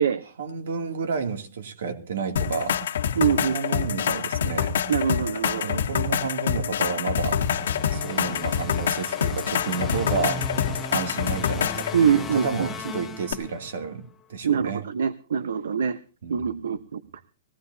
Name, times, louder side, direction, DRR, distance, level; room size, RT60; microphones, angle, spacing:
voice 1, 0.4-3.0 3.3-4.7 5.6-7.4 7.9-10.4 10.9-14.0 14.3-14.8 16.2-16.8, right 5 dB, 70° right, 5 dB, 2.6 m, -31 dB
sound 1, 2.4-12.0 13.3-13.4, left 8 dB, 70° left, 1.4 m, -26 dB
voice 2, 3.2-3.8 4.9-5.8 11.9-12.7 14.4-16.0 16.3-17.0, right 7 dB, 85° right, 14 dB, 0.8 m, -24 dB
sound 2, 7.2-13.9, left 4 dB, 10° left, 0.7 m, -37 dB
21.0 x 16.0 x 2.8 m, 0.35 s
hypercardioid pair, 175°, 0 cm